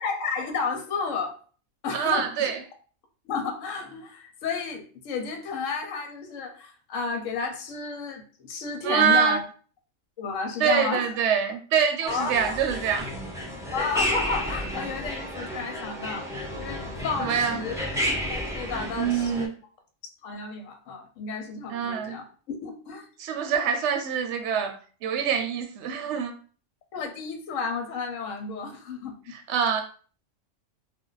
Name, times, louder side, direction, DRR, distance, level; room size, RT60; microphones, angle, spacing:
voice 1, 0.0-1.4 1.8-2.5 3.2-9.4 10.2-11.1 12.1-12.6 13.7-16.3 16.6-17.7 18.3-19.5 20.2-23.1 26.9-29.3, left 4 dB, 80° left, 4 dB, 1.0 m, -32 dB
voice 2, 1.9-2.6 8.8-9.4 10.6-13.1 17.2-17.6 19.0-19.5 21.7-22.1 23.2-26.3 29.3-29.8, right 7 dB, 70° right, 5 dB, 0.8 m, -25 dB
sound 1, 12.1-19.5, equal, 5° right, 0.4 m, -32 dB
2.4 x 2.2 x 3.9 m, 0.41 s
omnidirectional pair, 1.3 m